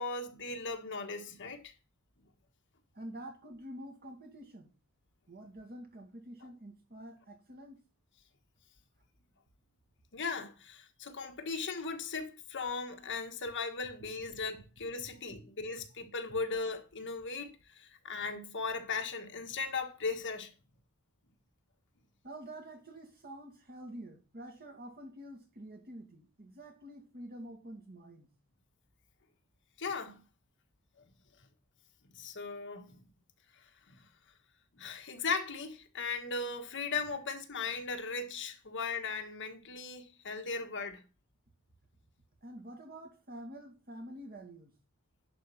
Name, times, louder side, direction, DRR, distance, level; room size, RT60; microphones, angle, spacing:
voice 1, 0.0-1.7 10.1-20.5 29.8-30.2 32.1-33.0 33.9-34.0 34.8-41.0, left 4 dB, 55° left, 1.4 m, -38 dB
voice 2, 2.9-4.7 5.3-7.8 22.2-28.3 42.4-44.8, right 1 dB, 45° right, 2.0 m, -48 dB
11.5 x 4.2 x 5.5 m
head